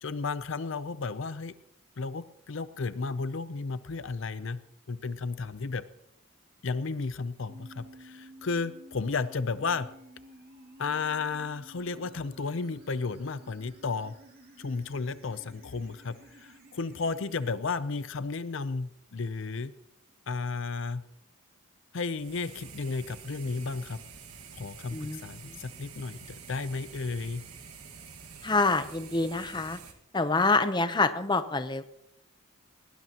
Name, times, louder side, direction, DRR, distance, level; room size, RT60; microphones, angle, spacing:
voice 1, 0.0-1.5 2.0-4.6 4.9-5.8 6.6-9.9 10.8-14.2 14.6-19.7 20.3-21.0 21.9-24.0 24.6-27.4, left 4 dB, 60° left, 14 dB, 0.5 m, -33 dB
sound 1, 7.5-17.5, right 1 dB, 45° right, 2.8 m, -53 dB
sound 2, 22.2-29.9, right 6 dB, 90° right, 1.8 m, -48 dB
voice 2, 28.4-29.8 30.1-31.8, left 3 dB, 20° left, 10 dB, 0.7 m, -26 dB
20.0 x 18.5 x 2.9 m, 0.81 s
head